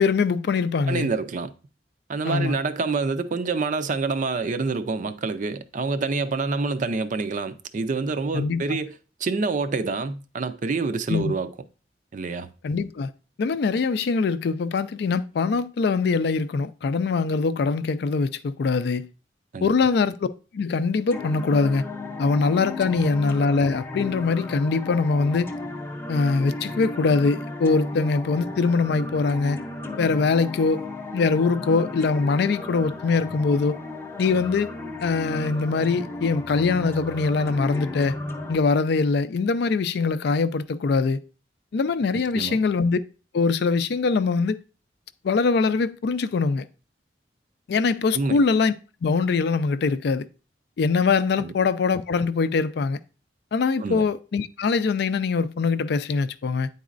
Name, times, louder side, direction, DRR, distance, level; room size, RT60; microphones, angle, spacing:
voice 1, 0.0-1.1 2.2-2.6 8.3-8.6 11.1-11.3 12.6-13.1 13.4-19.1 19.6-20.3 20.5-21.8 22.2-25.5 26.1-29.6 30.0-30.9 31.1-33.8 34.2-34.7 35.0-38.2 38.5-41.2 41.7-43.0 43.3-44.6 45.2-46.7 47.7-48.7 49.0-50.3 50.8-53.0 53.5-56.7, left 4 dB, 65° left, 0.4 m, -23 dB
voice 2, 0.9-1.5 2.1-9.0 9.2-11.5 12.1-12.5 19.5-19.7 23.0-23.1 42.1-42.6 48.1-48.4 51.4-51.5 53.8-54.0, right 4 dB, 45° right, 0.4 m, -27 dB
sound 1, 21.1-38.6, left 2 dB, 15° left, 0.6 m, -34 dB
9.3 x 4.0 x 2.5 m
head